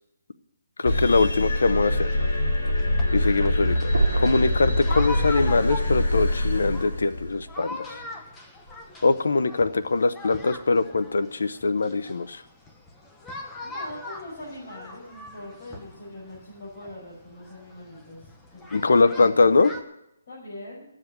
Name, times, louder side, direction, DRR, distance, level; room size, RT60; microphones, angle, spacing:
voice 1, 0.8-2.1 3.1-7.8 9.0-12.4 18.7-19.7, left 3 dB, 85° left, 13 dB, 0.8 m, -22 dB
sound 1, 0.8-7.4, left 1 dB, 65° left, 6.9 m, -24 dB
sound 2, 1.7-19.8, left 2 dB, 10° left, 1.0 m, -42 dB
voice 2, 2.8-3.8 13.6-19.5 20.3-20.9, left 1 dB, 45° left, -7 dB, 5.8 m, -42 dB
sound 3, 3.9-8.1, right 4 dB, 90° right, 1.6 m, -31 dB
14.0 x 7.6 x 9.2 m, 0.83 s
hypercardioid pair, 175°, 0 cm